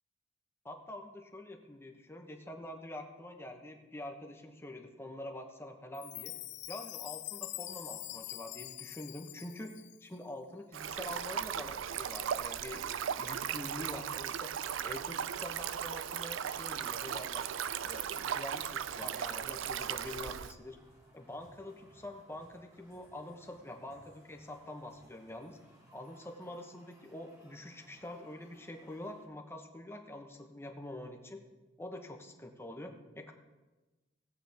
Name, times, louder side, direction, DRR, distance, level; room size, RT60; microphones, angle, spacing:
voice 1, 0.6-6.3 6.7-9.7 10.0-12.9 13.1-14.5 14.8-17.4 17.8-20.8 21.1-25.6 25.9-31.4 31.8-33.3, left 1 dB, 15° left, 4 dB, 1.0 m, -46 dB
Chime, 5.9-10.2, left 17 dB, 65° left, 0.3 m, -44 dB
Stream, 10.7-20.5, right 9 dB, 85° right, 0.4 m, -37 dB
sound 1, 18.7-29.3, equal, 15° right, 2.2 m, -62 dB
17.0 x 8.3 x 3.5 m, 1.2 s
head